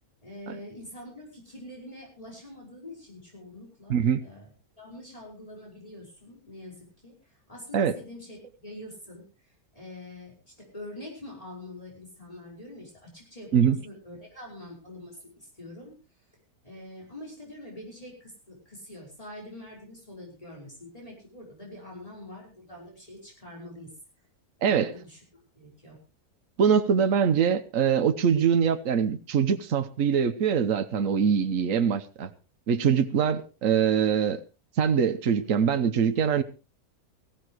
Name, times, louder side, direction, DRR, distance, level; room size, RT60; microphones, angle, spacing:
voice 1, 0.2-9.2 9.7-15.9 16.6-23.9 24.6-25.2 25.6-26.0, left 1 dB, 25° left, 5.4 m, -45 dB
voice 2, 3.9-4.2 7.7-7.9 13.5-13.8 24.6-24.9 26.6-32.3 32.7-34.4 34.8-36.4, right 7 dB, 65° right, 1.4 m, -23 dB
19.5 x 15.5 x 3.1 m
omnidirectional pair, 1.5 m